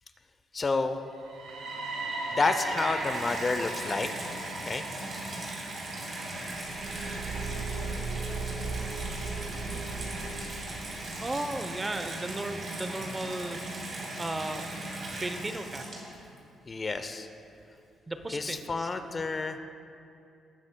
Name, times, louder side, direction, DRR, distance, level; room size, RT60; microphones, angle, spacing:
voice 1, 0.5-1.0 2.3-4.1 4.7-4.8 16.7-17.3 18.3-19.6, left 3 dB, 35° left, 8 dB, 0.6 m, -29 dB
sound 1, 1.1-9.0, right 2 dB, 90° right, 1.5 m, -39 dB
Water tap faucet / Bathtub (filling or washing), 2.3-16.4 17.2-17.3, right 2 dB, 45° right, 2.6 m, -38 dB
Car / Engine, 6.5-11.0, right 4 dB, 70° right, 1.9 m, -37 dB
voice 2, 11.2-13.6 14.2-14.7 15.1-15.9 18.1-18.9, right 2 dB, 20° right, 8 dB, 0.7 m, -35 dB
18.5 x 9.6 x 2.2 m, 2.7 s
cardioid pair, 90°, 0 cm